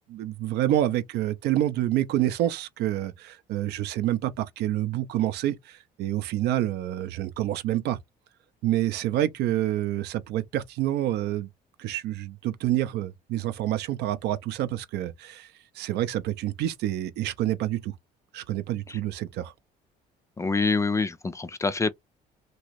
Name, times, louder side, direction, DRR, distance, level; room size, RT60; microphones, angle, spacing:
voice 1, 0.1-8.0 8.6-11.5 11.8-15.5 15.8-17.9 18.3-19.5, right 13 dB, 80° right, 0.5 m, -28 dB
voice 2, 20.4-21.9, left 4 dB, 15° left, 0.3 m, -26 dB
3.0 x 2.5 x 3.0 m
cardioid pair, 110°, 17 cm